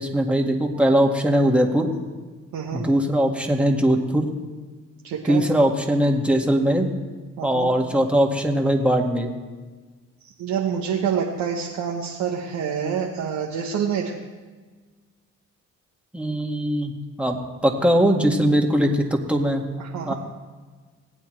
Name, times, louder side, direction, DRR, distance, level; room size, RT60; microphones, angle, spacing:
voice 1, 0.0-1.9 2.7-4.3 5.2-6.9 7.4-9.3 16.1-16.9 17.2-17.4 17.6-19.6 20.0-20.1, equal, 5° right, 1 dB, 2.0 m, -20 dB
voice 2, 2.5-2.9 5.0-5.4 7.4-7.7 10.3-14.1 19.8-20.1, right 7 dB, 80° right, -1 dB, 1.1 m, -27 dB
19.5 x 8.5 x 3.3 m, 1.4 s
supercardioid pair, 55°, 34 cm